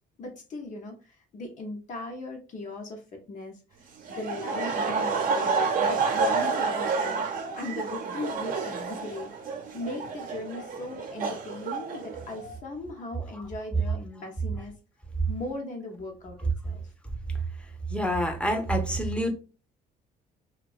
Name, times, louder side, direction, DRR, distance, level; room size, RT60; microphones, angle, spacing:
voice 1, 0.2-3.0 3.3-3.6 4.1-7.2 7.6-9.5 9.7-14.7 15.3-16.8, left 2 dB, 45° left, 2 dB, 0.6 m, -38 dB
Laughter, 4.1-12.6, right 4 dB, 50° right, 0.6 m, -29 dB
voice 2, 17.9-19.3, equal, 5° left, 3 dB, 0.6 m, -27 dB
2.6 x 2.2 x 2.3 m, 0.33 s
cardioid pair, 110°, 17 cm